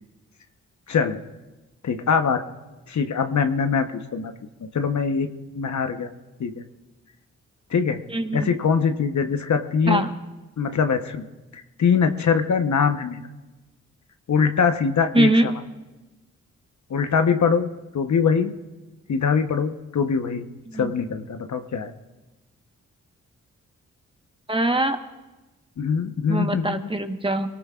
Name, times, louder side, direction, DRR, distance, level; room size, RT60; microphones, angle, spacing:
voice 1, 0.9-1.2 1.8-2.4 2.9-4.3 4.7-5.3 5.5-6.1 6.4-6.5 7.7-8.0 8.3-10.0 10.6-11.2 11.5-13.2 14.3-15.5 16.9-17.7 17.9-18.5 19.1-20.4 20.8-21.9 25.8-26.8, left 6 dB, 60° left, 7 dB, 1.1 m, -22 dB
voice 2, 8.1-8.5 9.9-10.1 15.1-15.5 20.7-20.9 24.5-25.0 26.3-27.5, right 1 dB, 15° right, 6 dB, 1.3 m, -22 dB
23.0 x 18.5 x 2.5 m, 1.1 s
supercardioid pair, 45°, 33 cm